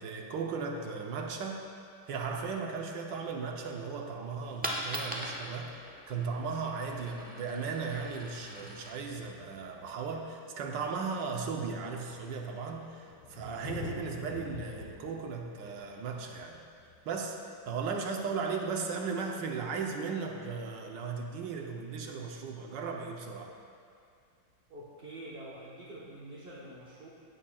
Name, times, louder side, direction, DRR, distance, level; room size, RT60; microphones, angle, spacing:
voice 1, 0.0-1.6 2.1-5.7 6.1-16.6 17.0-17.4 17.7-23.5, right 5 dB, 70° right, 2 dB, 1.4 m, -36 dB
Coin (dropping), 4.5-10.3, equal, 15° right, 0.3 m, -42 dB
Thunder, 9.3-9.4 10.4-10.5 10.7-18.0 19.7-19.8, left 4 dB, 85° left, 1.9 m, -47 dB
voice 2, 24.7-27.1, right 1 dB, 35° right, -8 dB, 1.2 m, -46 dB
14.0 x 8.8 x 2.3 m, 2.3 s
omnidirectional pair, 2.2 m